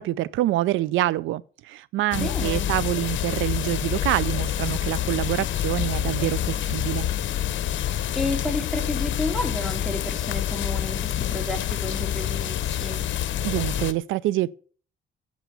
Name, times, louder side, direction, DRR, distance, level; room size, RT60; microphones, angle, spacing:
voice 1, 0.0-7.1 13.4-14.5, right 15 dB, 80° right, 0.4 m, -26 dB
sound 1, 2.1-13.9, left 11 dB, 70° left, 0.9 m, -27 dB
voice 2, 2.1-2.7 7.8-13.0, left 2 dB, ahead, 3.2 m, -31 dB
9.1 x 8.2 x 6.9 m
cardioid pair, 90°, 20 cm